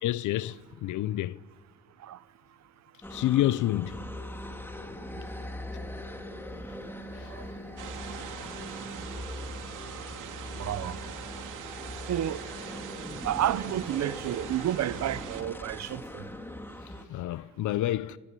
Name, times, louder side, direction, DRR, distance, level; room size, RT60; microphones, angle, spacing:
voice 1, 0.0-1.4 3.1-4.0 7.1-7.3 17.1-18.2, left 14 dB, 80° left, 0.7 m, -28 dB
sound 1, 3.0-17.0, left 1 dB, 5° left, 2.1 m, -41 dB
sound 2, 7.8-15.4, right 8 dB, 85° right, 2.8 m, -42 dB
voice 2, 10.6-11.0 12.1-12.4 13.2-16.2, right 12 dB, 60° right, 0.8 m, -30 dB
28.5 x 15.5 x 9.9 m
cardioid pair, 90°, 30 cm